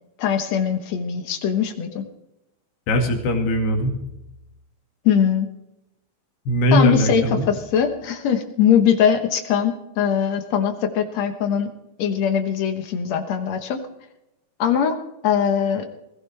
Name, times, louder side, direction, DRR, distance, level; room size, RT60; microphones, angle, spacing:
voice 1, 0.2-2.1 5.1-5.5 6.7-11.7 12.0-13.9 14.6-15.0 15.2-15.9, left 8 dB, 65° left, 6 dB, 1.8 m, -21 dB
voice 2, 2.9-3.9 6.5-7.5, equal, 90° left, 3 dB, 4.3 m, -20 dB
20.5 x 15.5 x 3.3 m, 0.89 s
omnidirectional pair, 4.5 m